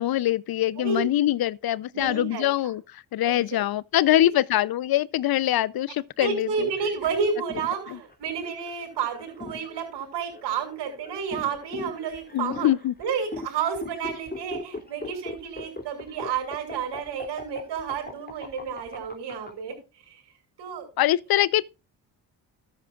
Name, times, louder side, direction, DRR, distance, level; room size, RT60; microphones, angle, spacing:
voice 1, 0.0-6.7 7.9-8.0 12.3-12.9 21.0-21.6, left 13 dB, 60° left, 0.7 m, -23 dB
voice 2, 1.9-2.4 3.2-3.6 4.2-4.3 6.2-12.7 13.0-19.8 20.1-20.2 20.6-20.9, right 6 dB, 75° right, 6.7 m, -31 dB
sound 1, 7.1-19.5, left 3 dB, 20° left, 2.8 m, -40 dB
13.5 x 10.5 x 2.4 m
supercardioid pair, 55°, 41 cm